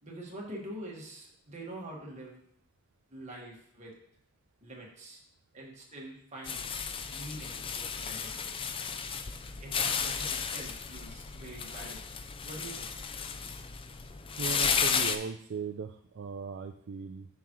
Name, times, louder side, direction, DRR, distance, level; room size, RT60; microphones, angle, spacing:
voice 1, 0.0-2.4 3.1-4.0 4.6-5.2 5.5-6.7 7.1-8.7 9.6-12.0 12.4-12.9, right 1 dB, 30° right, -3 dB, 1.7 m, -45 dB
sound 1, 6.4-15.2, left 6 dB, 25° left, 0.3 m, -33 dB
voice 2, 14.4-17.3, right 6 dB, 55° right, 7 dB, 0.3 m, -38 dB
7.2 x 5.9 x 3.1 m, 0.68 s
head